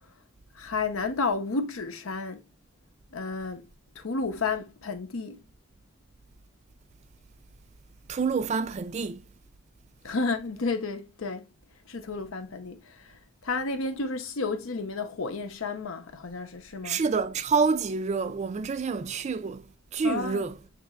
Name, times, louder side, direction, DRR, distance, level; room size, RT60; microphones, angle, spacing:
voice 1, 0.5-2.4 3.1-3.7 4.0-5.4 10.0-11.5 11.9-13.2 13.4-17.0 20.0-20.4, left 4 dB, 85° left, 0.8 m, -31 dB
voice 2, 8.1-9.2 16.8-19.6 19.9-20.5, right 5 dB, 35° right, 0.3 m, -27 dB
6.7 x 3.0 x 2.3 m
head